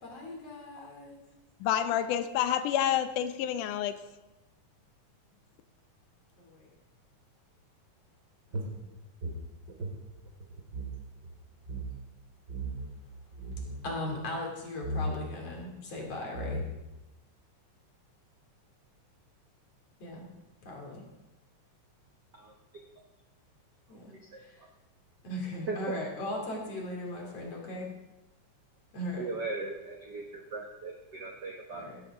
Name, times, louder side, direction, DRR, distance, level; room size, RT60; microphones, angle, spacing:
voice 1, 0.0-1.2 6.4-6.7 8.5-8.9 13.8-16.6 20.0-20.3 20.6-21.0 23.9-24.6 25.2-27.9 28.9-29.3 31.7-32.0, left 1 dB, 50° left, -1 dB, 3.8 m, -38 dB
voice 2, 1.6-3.9, left 10 dB, 85° left, 10 dB, 2.2 m, -28 dB
sound 1, 8.5-11.0 11.2-11.3 11.6-11.9 12.5-12.9 13.3-13.8 14.8-15.2 16.0-16.1 16.3-17.0, right 1 dB, 35° right, 2.4 m, -36 dB
voice 3, 24.3-24.7 25.7-25.9 29.2-31.9, right 3 dB, 70° right, 1 dB, 1.0 m, -38 dB
16.0 x 11.5 x 3.7 m, 1.0 s
omnidirectional pair, 3.6 m